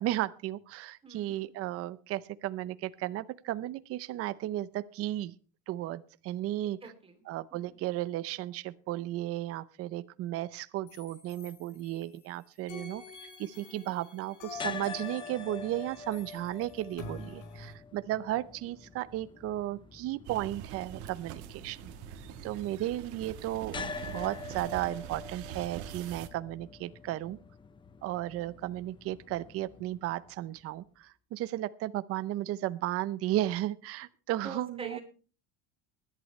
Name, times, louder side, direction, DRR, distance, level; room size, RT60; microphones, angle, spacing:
voice 1, 0.0-5.3 5.7-6.8 7.3-13.0 13.4-21.9 22.4-23.8 24.0-27.4 28.0-35.0, right 14 dB, 45° right, 15 dB, 0.7 m, -34 dB
voice 2, 1.0-1.4 6.8-7.2 7.5-7.7 13.5-13.9 34.4-35.0, right 4 dB, 15° right, 6 dB, 2.9 m, -45 dB
sound 1, 10.9-12.3 12.7-17.7, left 4 dB, 80° left, 5.1 m, -47 dB
sound 2, 14.5-30.7, left 4 dB, 15° left, 0.6 m, -46 dB
sound 3, 20.2-26.3, right 10 dB, 65° right, 1.6 m, -44 dB
20.5 x 11.0 x 3.2 m, 0.36 s
cardioid pair, 140°, 32 cm